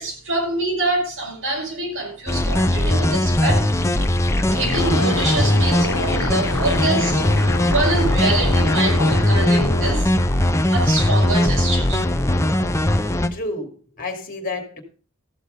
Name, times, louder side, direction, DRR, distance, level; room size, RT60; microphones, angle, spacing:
voice 1, 0.0-3.7 4.5-10.1 10.7-12.0, right 2 dB, 60° right, 5.0 m, -25 dB
sound 1, 2.3-13.3, left 1 dB, 15° left, 0.7 m, -19 dB
sound 2, 4.7-9.9, left 2 dB, 70° left, 1.5 m, -28 dB
voice 2, 13.3-14.8, left 2 dB, 40° left, 2.6 m, -30 dB
14.0 x 6.9 x 5.1 m
head